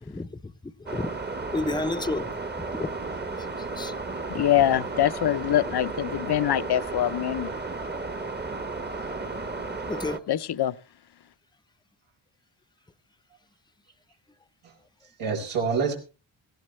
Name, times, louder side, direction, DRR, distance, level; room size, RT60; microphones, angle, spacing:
voice 1, 0.0-0.4 0.9-1.1 1.5-2.3 2.8-2.9 3.8-3.9 8.9-9.0 9.9-10.2, left 2 dB, 10° left, 0.7 m, -30 dB
sound 1, 0.9-10.2, right 3 dB, 20° right, 1.1 m, -34 dB
voice 2, 4.3-7.5 10.3-10.8, left 11 dB, 55° left, 0.7 m, -24 dB
voice 3, 8.9-9.9 14.6-15.9, right 5 dB, 90° right, 4.7 m, -31 dB
18.5 x 16.5 x 3.2 m
wide cardioid pair, 120°, 48 cm